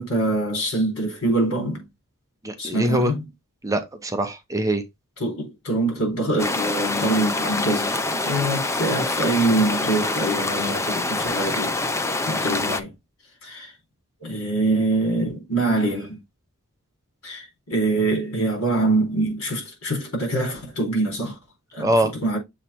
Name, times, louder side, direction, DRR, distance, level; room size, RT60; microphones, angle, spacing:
voice 1, 0.0-1.8 2.6-3.2 5.2-11.8 12.3-12.9 13.4-13.7 14.2-16.2 17.2-21.4 21.7-22.4, right 2 dB, 70° left, 4.1 m, -24 dB
voice 2, 2.4-3.1 3.6-4.8 21.8-22.1, right 1 dB, 15° right, 0.8 m, -23 dB
sound 1, 6.4-12.8, left 2 dB, 15° left, 0.5 m, -25 dB
7.2 x 3.2 x 4.3 m
head